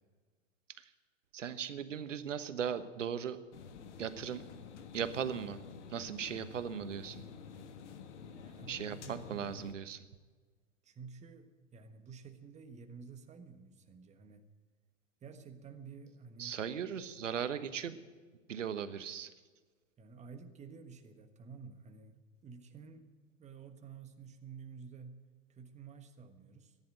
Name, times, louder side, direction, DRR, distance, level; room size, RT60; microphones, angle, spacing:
voice 1, 1.3-3.4 4.0-4.4 4.9-5.6 5.9-7.2 8.7-10.0 16.4-18.0 18.5-19.3, right 8 dB, 80° right, 12 dB, 1.2 m, -38 dB
sound 1, 3.5-9.7, left 6 dB, 65° left, 1.6 m, -49 dB
voice 2, 8.4-9.5 10.8-14.5 15.2-16.6 20.0-22.1 22.4-23.1 23.4-26.8, right 5 dB, 20° right, 7 dB, 1.4 m, -51 dB
14.0 x 10.5 x 9.1 m, 1.4 s
hypercardioid pair, 105°, 37 cm